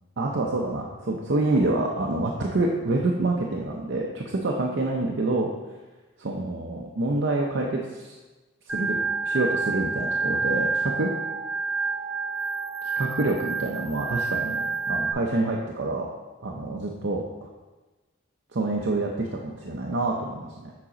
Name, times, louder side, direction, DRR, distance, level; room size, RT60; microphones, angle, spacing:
voice 1, 0.2-5.5 6.2-8.2 8.7-11.1 13.0-16.1 16.4-17.5 18.5-20.7, right 2 dB, 60° right, -1 dB, 0.6 m, -27 dB
Organ, 8.7-15.1, right 4 dB, 10° right, 2.4 m, -28 dB
7.3 x 4.1 x 5.0 m, 1.2 s
head